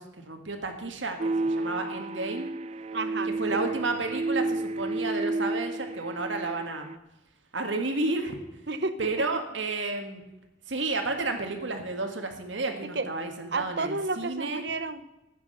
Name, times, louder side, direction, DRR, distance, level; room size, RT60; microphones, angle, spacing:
voice 1, 0.0-2.5 3.4-6.9 7.5-8.4 9.0-10.2 10.7-14.6, right 3 dB, 85° right, 5 dB, 1.8 m, -31 dB
sound 1, 1.2-7.0, right 2 dB, 35° right, 0.3 m, -31 dB
voice 2, 2.9-3.7 8.7-9.3 12.9-13.1 13.5-15.0, right 3 dB, 60° right, 12 dB, 0.9 m, -31 dB
11.5 x 8.8 x 6.7 m, 0.95 s
head